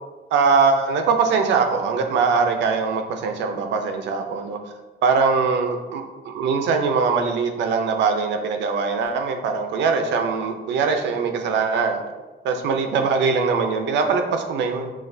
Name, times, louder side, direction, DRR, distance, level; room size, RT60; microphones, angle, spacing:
voice 1, 0.3-4.6 5.0-12.0 12.4-14.9, right 5 dB, 85° right, 5 dB, 0.5 m, -22 dB
5.9 x 2.4 x 2.6 m, 1.2 s
cardioid pair, 160°, 18 cm